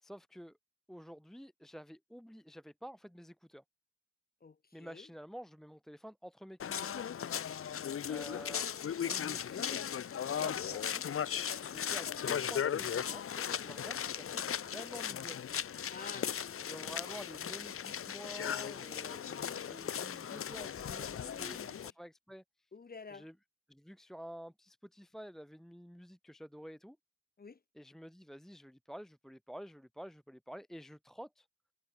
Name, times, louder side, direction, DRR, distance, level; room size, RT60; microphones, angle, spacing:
voice 1, 0.0-0.6 0.9-3.6 4.7-7.0 8.1-9.9 10.3-11.3 11.7-15.6 16.6-22.4 23.1-23.3 23.7-27.0 27.8-31.5, equal, ahead, 1.0 m, -50 dB
voice 2, 4.4-5.1 11.5-11.8 15.9-16.9 21.2-21.9 22.7-23.3 27.4-27.6, left 4 dB, 30° left, 4.3 m, -51 dB
sound 1, 6.6-21.9, left 8 dB, 45° left, 0.9 m, -37 dB
wide cardioid pair, 170°, 30 cm